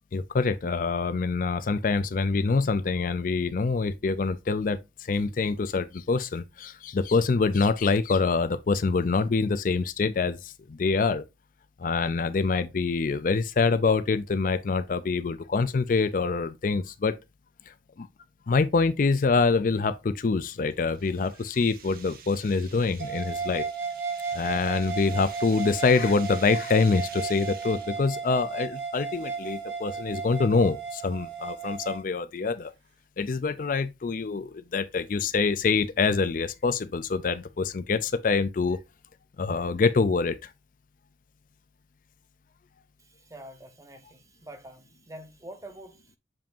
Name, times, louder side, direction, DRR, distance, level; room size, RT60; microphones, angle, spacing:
voice 1, 0.1-11.2 11.8-17.2 18.0-18.1 18.5-23.6 24.3-32.7 33.2-38.8 39.4-40.5, left 4 dB, 50° left, 0.4 m, -25 dB
sound 1, 20.6-28.2, right 7 dB, 55° right, 1.1 m, -48 dB
sound 2, 23.0-32.0, right 5 dB, 75° right, 1.2 m, -34 dB
voice 2, 43.0-46.2, right 1 dB, 20° right, 0.9 m, -46 dB
7.1 x 5.2 x 2.6 m
head